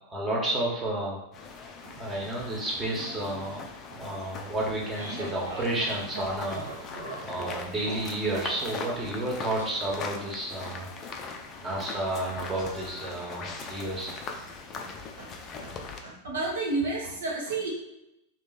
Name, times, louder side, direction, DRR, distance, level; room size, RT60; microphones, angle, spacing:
voice 1, 0.1-1.2 2.0-3.6 4.0-10.9 11.6-14.1, right 1 dB, 20° right, -3 dB, 1.3 m, -31 dB
sound 1, 1.3-16.0, left 4 dB, 30° left, 0.5 m, -41 dB
sound 2, 4.5-9.6, right 3 dB, 80° right, 1.0 m, -40 dB
voice 2, 16.0-17.7, right 3 dB, 65° right, -3 dB, 1.2 m, -31 dB
3.2 x 3.0 x 4.1 m, 0.88 s
figure-of-eight pair, 90°, 0 cm